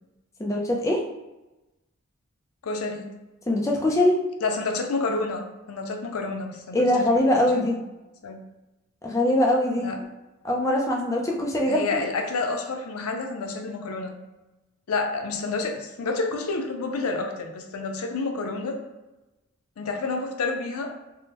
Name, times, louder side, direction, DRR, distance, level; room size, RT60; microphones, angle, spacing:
voice 1, 0.4-1.0 3.5-4.2 6.7-7.8 9.0-10.0 10.4-11.8, left 1 dB, 15° left, -1 dB, 0.4 m, -22 dB
voice 2, 2.6-3.1 4.4-7.1 7.5-7.8 8.2-8.4 9.8-10.0 11.7-14.2 14.9-18.8 19.8-20.9, left 3 dB, 90° left, 3 dB, 0.5 m, -29 dB
3.5 x 2.1 x 2.8 m, 1.0 s
head